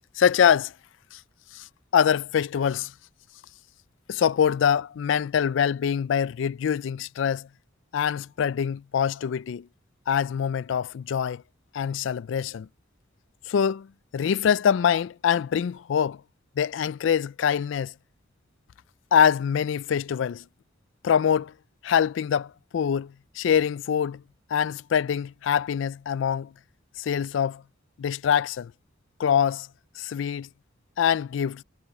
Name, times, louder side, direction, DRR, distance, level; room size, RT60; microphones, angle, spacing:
voice 1, 0.2-0.7 1.1-1.2 1.5-1.7 1.9-2.9 4.1-7.5 7.9-9.7 10.1-11.4 11.7-12.7 13.5-13.9 14.1-16.2 16.6-17.9 19.1-20.4 21.0-21.5 21.8-24.2 24.5-26.5 27.0-27.6 28.0-28.7 29.2-29.7 30.0-30.5 31.0-31.6, left 8 dB, 70° left, 0.3 m, -24 dB
head